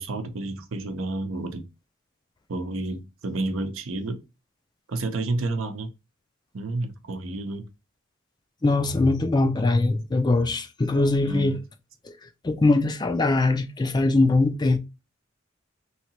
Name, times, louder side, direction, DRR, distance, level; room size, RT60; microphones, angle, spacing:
voice 1, 0.0-1.7 2.5-4.2 4.9-5.9 6.5-7.7 11.2-11.6, right 2 dB, 75° right, 0.7 m, -30 dB
voice 2, 8.6-11.6 12.4-14.8, left 2 dB, 20° left, 0.4 m, -21 dB
3.1 x 2.8 x 2.9 m
head